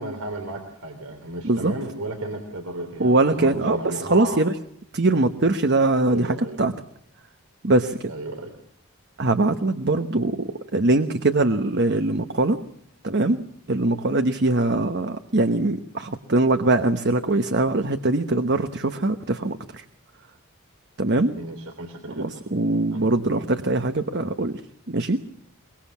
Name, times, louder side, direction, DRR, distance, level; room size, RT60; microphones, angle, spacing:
voice 1, 0.0-4.4 6.1-6.6 8.1-8.5 21.4-22.4 22.9-23.1, right 1 dB, 80° right, 5 dB, 3.3 m, -34 dB
voice 2, 3.0-4.5 4.9-6.7 7.6-8.1 9.2-12.6 13.0-13.4 13.7-19.8 21.0-21.3 22.1-24.6 24.9-25.2, right 2 dB, 50° right, 8 dB, 1.0 m, -22 dB
23.5 x 22.5 x 7.3 m, 0.65 s
head